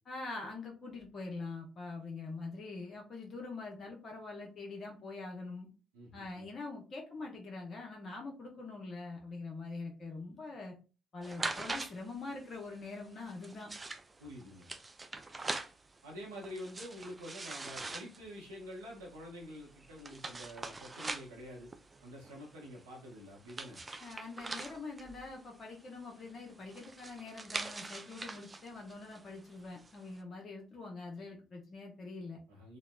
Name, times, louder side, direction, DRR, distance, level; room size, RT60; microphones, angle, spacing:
voice 1, 0.1-5.7 6.1-10.7 11.1-13.7 24.0-32.4, left 3 dB, 45° left, 1 dB, 0.6 m, -44 dB
voice 2, 5.9-6.4 14.2-14.7 16.0-21.7 22.0-23.8 32.5-32.8, equal, 75° right, -2 dB, 0.7 m, -47 dB
sound 1, 11.2-30.2, right 3 dB, 25° right, 0.3 m, -44 dB
3.0 x 2.0 x 2.3 m, 0.33 s
figure-of-eight pair, 45°, 0 cm